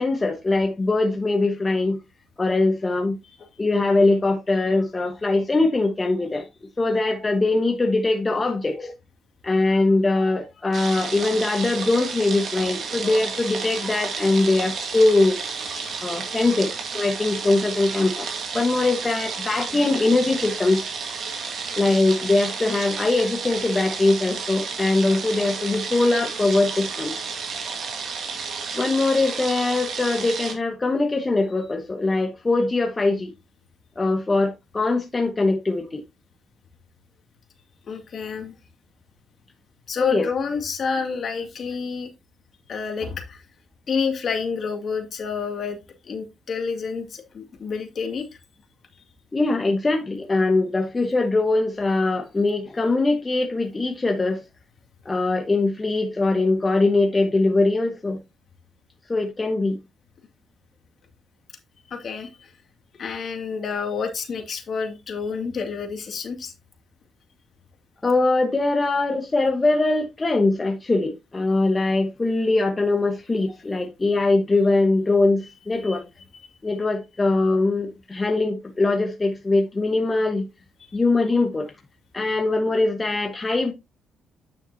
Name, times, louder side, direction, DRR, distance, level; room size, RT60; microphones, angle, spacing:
voice 1, 0.0-2.0 2.4-3.2 3.6-6.5 6.8-8.9 9.4-15.4 16.0-18.3 18.5-20.8 21.8-27.1 28.7-33.3 34.0-36.0 40.0-40.3 49.3-54.4 55.0-58.2 59.1-59.8 68.0-76.0 76.6-80.5 80.9-81.7 82.1-83.7, left 2 dB, 25° left, 1.2 m, -22 dB
sound 1, 10.7-30.5, right 5 dB, 60° right, 2.3 m, -32 dB
voice 2, 13.5-14.0 14.4-14.7 15.4-16.0 37.9-38.6 39.9-42.1 42.7-43.4 43.9-45.8 46.0-48.3 61.9-62.5 63.0-66.5, left 5 dB, 55° left, 2.3 m, -29 dB
10.0 x 5.7 x 2.8 m
cardioid pair, 90°, 0 cm